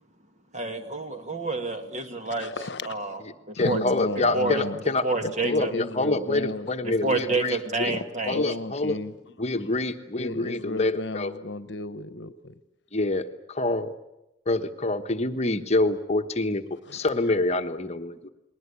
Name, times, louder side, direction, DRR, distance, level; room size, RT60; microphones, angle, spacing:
voice 1, 0.5-2.5 2.8-3.2 3.5-3.8 4.3-4.6 5.0-5.7 7.0-8.4, right 3 dB, 35° right, 6 dB, 2.1 m, -28 dB
voice 2, 2.4-2.9 3.6-4.8 5.2-7.2 7.9-9.1 9.6-9.7 10.2-12.5 16.9-17.0, left 2 dB, 60° left, 14 dB, 1.1 m, -34 dB
voice 3, 3.5-5.0 5.5-7.9 8.3-9.0 9.4-11.3 12.9-13.9 14.5-16.6 16.9-18.3, left 2 dB, 35° left, 7 dB, 1.2 m, -26 dB
29.5 x 21.0 x 8.4 m, 0.92 s
head